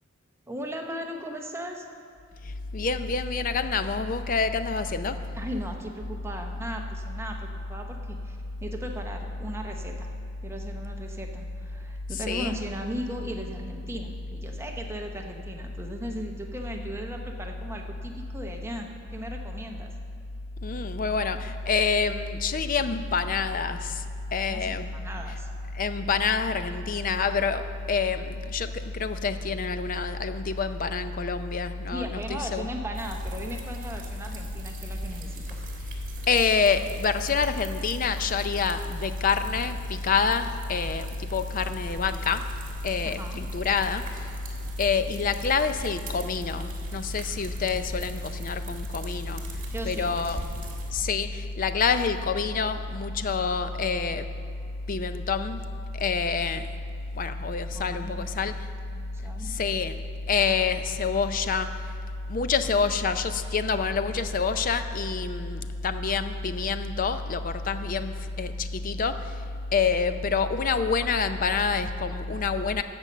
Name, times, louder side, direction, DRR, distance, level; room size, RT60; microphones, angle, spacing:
voice 1, 0.5-1.8 5.3-10.1 10.4-19.9 24.5-25.5 31.9-35.7 43.0-43.4 49.7-50.4 57.7-58.2 58.9-59.6, equal, 15° right, 2 dB, 0.8 m, -37 dB
voice 2, 2.7-5.2 12.3-12.6 20.6-24.0 24.3-24.9 25.7-27.6 27.9-32.7 36.3-42.4 42.8-44.0 44.8-49.4 49.9-50.6 50.9-54.2 54.9-55.6 55.9-56.7 57.1-58.5 59.4-60.0 60.3-61.7 62.3-69.3 69.7-72.8, left 5 dB, 45° left, 10 dB, 0.5 m, -27 dB
sound 1, 32.9-50.9, right 2 dB, 40° right, 1.7 m, -42 dB
13.5 x 5.3 x 7.3 m, 2.3 s
head